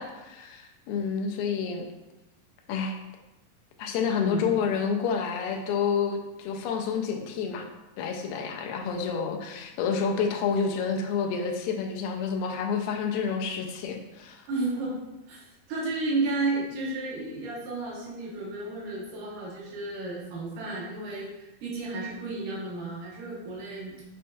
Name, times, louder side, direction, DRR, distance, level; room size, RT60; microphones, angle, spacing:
voice 1, 0.0-1.9 2.7-3.0 3.8-7.7 8.0-14.4, left 6 dB, 85° left, 3 dB, 2.2 m, -29 dB
voice 2, 4.1-4.5 14.5-15.0 15.3-24.0, right 3 dB, 75° right, -5 dB, 2.3 m, -32 dB
7.3 x 2.6 x 2.3 m, 1.0 s
omnidirectional pair, 4.0 m